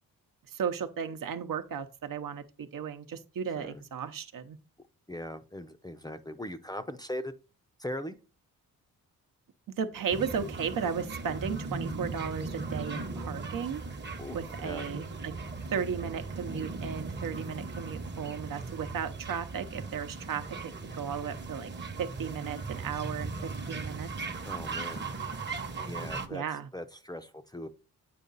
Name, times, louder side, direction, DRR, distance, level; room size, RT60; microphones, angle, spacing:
voice 1, 0.5-4.6 9.8-13.8 14.3-15.3 15.7-21.7 22.0-24.1 26.3-26.7, right 7 dB, 65° right, 0.9 m, -35 dB
voice 2, 5.1-7.3 7.8-8.2 14.2-14.4 14.6-14.9 24.4-25.1 25.8-26.4 26.7-27.7, left 1 dB, 10° left, 0.5 m, -39 dB
sound 1, 10.1-26.3, right 3 dB, 30° right, 1.0 m, -38 dB
8.6 x 4.7 x 4.0 m
cardioid pair, 100°, 36 cm